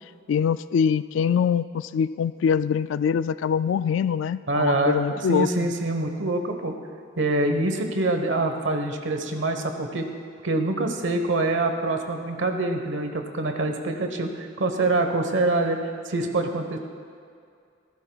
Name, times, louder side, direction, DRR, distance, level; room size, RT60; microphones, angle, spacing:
voice 1, 0.3-5.7, left 7 dB, 80° left, 15 dB, 0.3 m, -24 dB
voice 2, 4.5-6.8 7.2-10.1 10.4-16.8, right 2 dB, 80° right, 5 dB, 1.1 m, -25 dB
16.0 x 14.0 x 2.3 m, 2.3 s
head